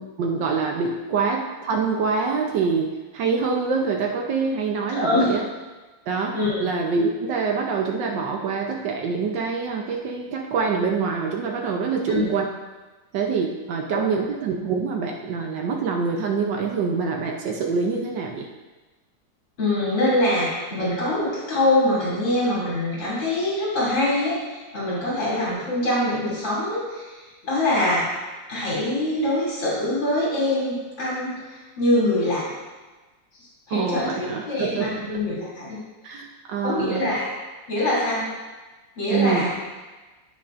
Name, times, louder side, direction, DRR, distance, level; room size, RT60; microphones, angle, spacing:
voice 1, 0.2-5.4 6.1-12.4 13.1-18.5 33.7-35.1 36.0-37.0 39.1-39.5, right 5 dB, 75° right, 1 dB, 1.4 m, -25 dB
voice 2, 4.9-5.3 6.3-6.7 12.1-12.3 13.9-14.2 19.6-28.1 28.5-32.5 33.7-35.8 36.6-37.3 37.7-38.3 39.0-39.5, left 1 dB, 85° left, -7 dB, 3.5 m, -24 dB
16.5 x 5.9 x 2.5 m, 1.2 s
omnidirectional pair, 2.0 m